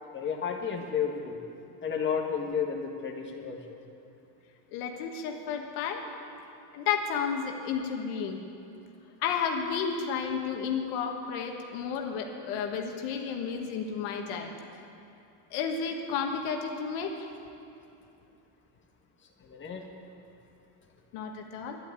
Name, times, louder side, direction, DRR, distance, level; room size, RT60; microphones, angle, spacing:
voice 1, 0.1-1.4 1.8-3.8 19.4-19.9, left 7 dB, 25° left, 0 dB, 1.6 m, -32 dB
voice 2, 4.7-6.0 6.7-8.4 9.2-14.5 15.5-17.2 21.1-21.8, left 6 dB, 75° left, 3 dB, 1.5 m, -32 dB
11.0 x 10.0 x 8.3 m, 2.7 s
cardioid pair, 125°, 48 cm